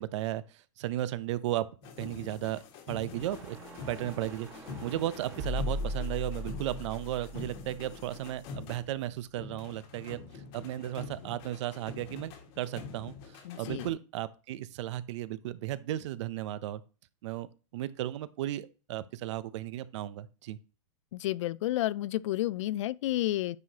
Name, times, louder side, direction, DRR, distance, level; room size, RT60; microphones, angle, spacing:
voice 1, 0.0-1.7 2.0-3.6 3.9-16.8 17.2-17.5 17.7-20.6, right 13 dB, 60° right, 0.6 m, -35 dB
sound 1, 1.8-9.1 9.4-13.9, left 4 dB, 45° left, 1.6 m, -45 dB
sound 2, 3.1-8.3, left 1 dB, 15° right, 1.5 m, -39 dB
voice 2, 13.5-13.9 21.1-23.6, left 15 dB, 65° left, 0.4 m, -31 dB
9.5 x 4.7 x 2.8 m
supercardioid pair, 145°, 17 cm